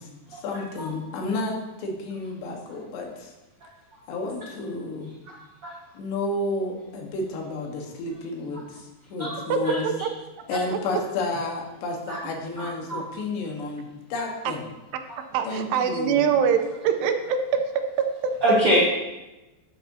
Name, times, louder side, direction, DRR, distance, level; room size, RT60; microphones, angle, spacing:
voice 1, 0.0-3.3 4.1-5.2 6.0-9.9 10.5-14.7 15.5-16.4, left 2 dB, 85° left, 1 dB, 3.5 m, -31 dB
voice 2, 9.5-10.1 10.7-10.8 15.3-17.6 18.0-18.3, right 7 dB, 85° right, 7 dB, 2.8 m, -24 dB
voice 3, 12.6-13.0 18.4-18.8, equal, 50° right, -6 dB, 1.6 m, -22 dB
11.5 x 8.8 x 2.7 m, 1.0 s
omnidirectional pair, 4.8 m